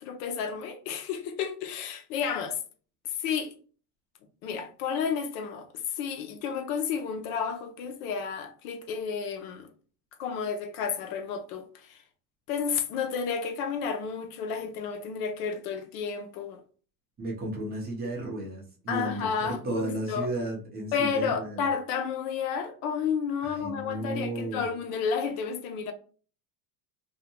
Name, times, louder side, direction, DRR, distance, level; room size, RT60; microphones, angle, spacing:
voice 1, 0.0-2.6 3.2-3.5 4.4-5.7 6.0-9.7 10.2-12.0 12.5-16.6 18.9-20.3 20.9-25.9, left 6 dB, 70° left, 0.7 m, -31 dB
voice 2, 17.2-21.6 23.4-24.6, right 2 dB, 20° right, 0.6 m, -34 dB
2.6 x 2.1 x 2.8 m
supercardioid pair, 145°, 47 cm